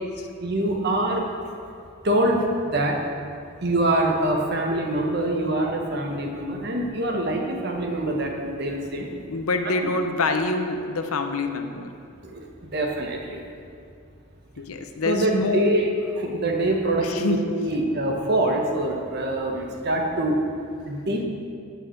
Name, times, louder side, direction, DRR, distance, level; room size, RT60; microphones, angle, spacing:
voice 1, 0.4-1.2 2.0-3.0 3.6-9.1 12.2-12.4 12.7-13.4 15.0-20.4 20.9-21.2, right 1 dB, 50° right, 1 dB, 1.2 m, -24 dB
voice 2, 9.3-11.9 14.6-15.7 17.0-17.4, left 3 dB, 85° left, 6 dB, 0.8 m, -26 dB
14.5 x 5.5 x 4.6 m, 2.3 s
head